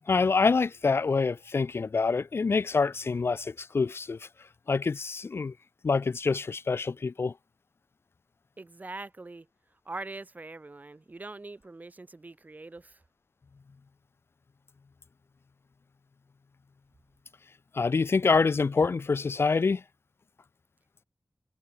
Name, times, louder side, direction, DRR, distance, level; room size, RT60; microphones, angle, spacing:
voice 1, 0.1-4.3 4.7-5.5 5.8-7.3 17.7-19.8, left 4 dB, 65° left, 0.9 m, -26 dB
voice 2, 8.6-9.5 9.9-13.0, right 2 dB, 40° right, 2.6 m, -42 dB
wide cardioid pair, 100°, 4 cm